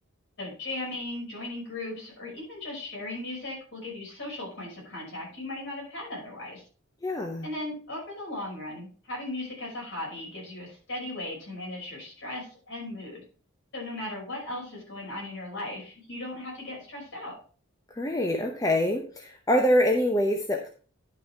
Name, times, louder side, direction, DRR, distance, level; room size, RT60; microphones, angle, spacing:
voice 1, 0.4-6.6 7.4-13.2 13.7-17.3, left 2 dB, 55° left, -3 dB, 5.7 m, -37 dB
voice 2, 7.0-7.5 17.9-20.7, left 1 dB, 15° left, 2 dB, 0.8 m, -25 dB
10.5 x 5.6 x 4.6 m, 0.40 s
head